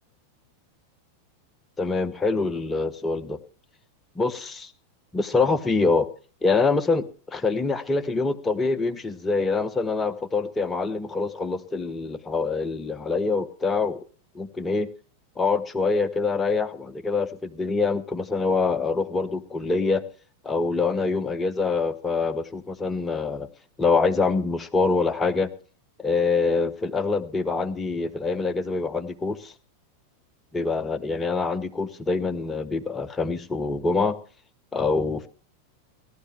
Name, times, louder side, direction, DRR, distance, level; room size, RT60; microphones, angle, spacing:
voice 1, 1.8-3.4 4.2-4.7 5.1-6.1 6.4-14.0 14.3-14.9 15.4-20.0 20.4-23.5 23.8-25.5 26.0-29.5 30.5-34.1 34.7-35.3, left 4 dB, 15° left, 11 dB, 0.8 m, -25 dB
17.0 x 12.0 x 3.2 m, 0.39 s
figure-of-eight pair, 90°, 0 cm